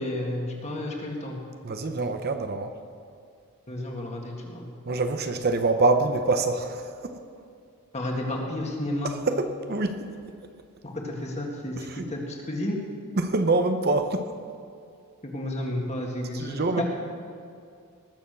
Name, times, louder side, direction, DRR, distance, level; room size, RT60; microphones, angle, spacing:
voice 1, 0.0-1.4 3.7-4.7 7.9-9.1 10.8-12.8 15.2-16.8, left 1 dB, 30° left, 0 dB, 1.9 m, -31 dB
voice 2, 1.6-2.7 4.9-7.2 9.0-10.0 11.8-12.1 13.2-14.3 16.3-16.8, right 3 dB, 45° right, 8 dB, 0.7 m, -25 dB
20.0 x 7.0 x 6.8 m, 2.4 s
head